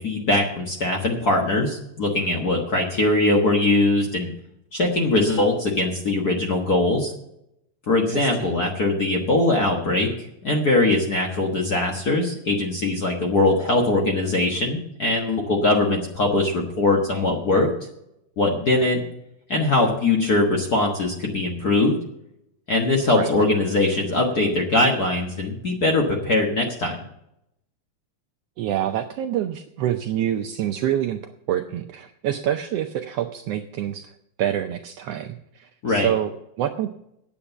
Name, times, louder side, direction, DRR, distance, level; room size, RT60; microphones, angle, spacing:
voice 1, 0.0-4.3 4.7-7.1 7.9-17.7 18.4-19.0 19.5-21.9 22.7-26.9 35.8-36.1, left 2 dB, 45° left, 1 dB, 1.3 m, -21 dB
voice 2, 8.1-8.5 23.1-23.3 28.6-31.2 31.5-34.1 34.4-36.9, right 11 dB, 75° right, 7 dB, 1.4 m, -26 dB
9.1 x 8.7 x 6.9 m, 0.79 s
omnidirectional pair, 3.3 m